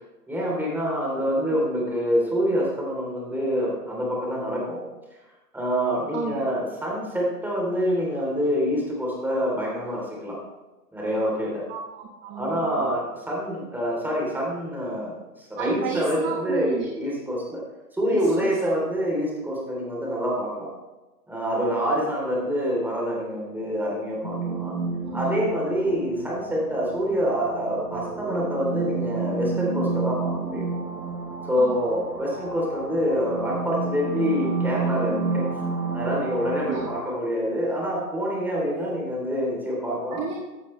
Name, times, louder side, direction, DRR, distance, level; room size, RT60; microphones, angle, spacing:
voice 1, 0.3-4.8 5.5-10.4 10.9-11.6 12.3-17.6 17.9-20.7 21.3-24.7 25.1-30.6 31.4-35.4 35.9-40.2, equal, 5° right, -4 dB, 3.3 m, -26 dB
voice 2, 1.3-1.6 6.1-6.4 11.7-12.9 15.6-16.8 18.1-18.6 25.1-25.3 31.5-31.9 36.7-36.9 40.1-40.3, right 7 dB, 25° right, 0 dB, 1.3 m, -32 dB
sound 1, 24.2-37.0, right 4 dB, 80° right, 3.4 m, -30 dB
15.0 x 8.2 x 3.2 m, 1.1 s
hypercardioid pair, 130°, 48 cm